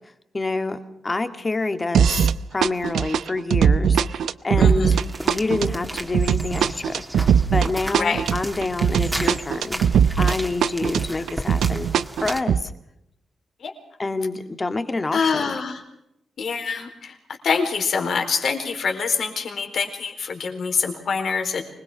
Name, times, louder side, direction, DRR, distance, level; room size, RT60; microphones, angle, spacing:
voice 1, 0.3-5.0 5.2-9.9 10.2-11.9 12.2-12.7 14.0-15.6, left 3 dB, 25° left, 9 dB, 1.9 m, -27 dB
sound 1, 1.9-2.4 2.6-10.4 10.6-12.6, right 7 dB, 85° right, 0.8 m, -20 dB
voice 2, 4.6-5.0 8.0-8.2 11.1-11.2 13.6-13.7 15.1-15.8 16.4-17.1 17.4-21.6, left 5 dB, 65° left, 5 dB, 4.3 m, -25 dB
sound 2, 4.8-12.4, equal, 5° right, 2.7 m, -35 dB
25.5 x 21.0 x 6.2 m, 0.82 s
cardioid pair, 110°, 0 cm